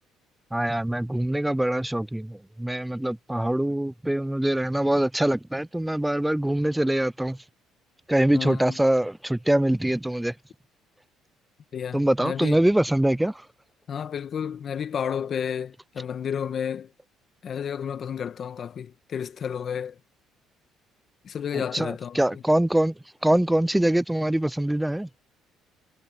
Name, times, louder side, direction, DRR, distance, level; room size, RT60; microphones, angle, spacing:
voice 1, 0.5-7.4 8.1-10.3 11.9-13.3 21.7-22.9 23.2-25.1, right 1 dB, 5° right, 0.3 m, -23 dB
voice 2, 8.3-8.8 11.7-12.6 13.9-16.9 17.4-20.0 21.2-22.4, left 8 dB, 45° left, 1.7 m, -31 dB
cardioid pair, 110°, 0 cm